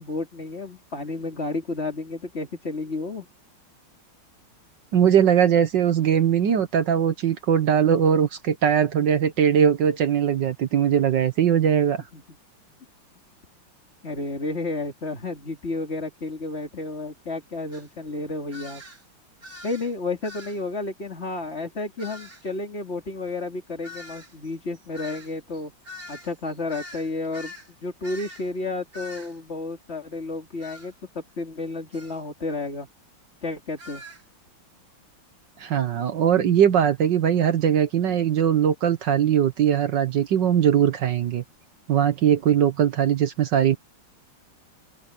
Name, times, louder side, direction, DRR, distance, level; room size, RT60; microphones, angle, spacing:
voice 1, 0.0-3.3 12.1-12.2 14.0-18.8 19.6-25.7 26.1-27.5 27.8-32.9 33.4-34.0, left 3 dB, 30° left, 3.0 m, -31 dB
voice 2, 4.9-12.0 35.6-41.4 41.9-43.8, right 9 dB, 60° right, 1.6 m, -20 dB
sound 1, 17.7-17.9 18.5-19.0 19.4-19.9 20.2-20.6 22.0-22.4 23.8-27.7 28.0-28.5 28.9-29.4 30.6-30.9 31.9-32.2 33.8-34.2, left 1 dB, 45° right, 3.9 m, -43 dB
omnidirectional pair, 2.3 m